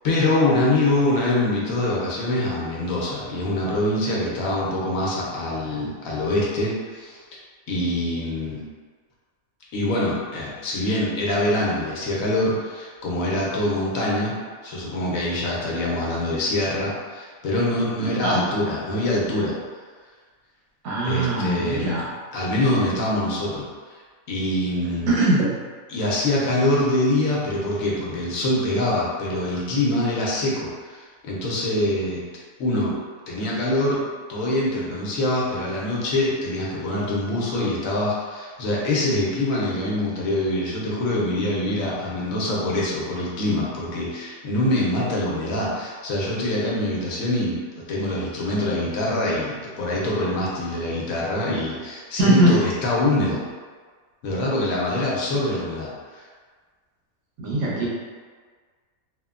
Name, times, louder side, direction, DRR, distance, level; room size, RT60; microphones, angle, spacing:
voice 1, 0.0-7.2 7.7-8.6 9.7-14.3 14.6-19.5 21.0-22.0 22.3-23.7 24.3-25.2 25.9-32.2 32.6-32.9 33.3-34.0 34.3-47.6 47.9-53.4 54.2-56.2, left 1 dB, 75° left, -5 dB, 1.0 m, -24 dB
voice 2, 20.8-22.1 25.1-25.5 52.2-52.6 57.4-57.9, right 1 dB, 90° right, -5 dB, 1.2 m, -20 dB
3.1 x 2.1 x 2.3 m, 1.6 s
omnidirectional pair, 1.5 m